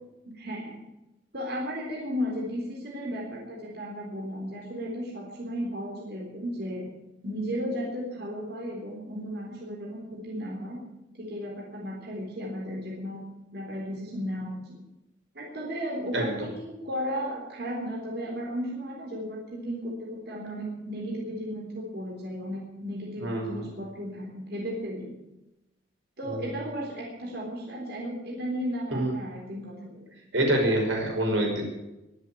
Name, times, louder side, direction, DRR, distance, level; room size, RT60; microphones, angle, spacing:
voice 1, 0.2-0.8 1.3-6.9 7.2-10.8 11.2-13.2 13.5-14.8 15.3-25.1 26.2-30.1, equal, 60° right, -2 dB, 4.0 m, -34 dB
voice 2, 23.2-23.6 26.2-26.5 28.9-29.1 30.3-31.6, right 1 dB, 85° right, 1 dB, 5.6 m, -26 dB
22.5 x 7.5 x 8.6 m, 0.96 s
head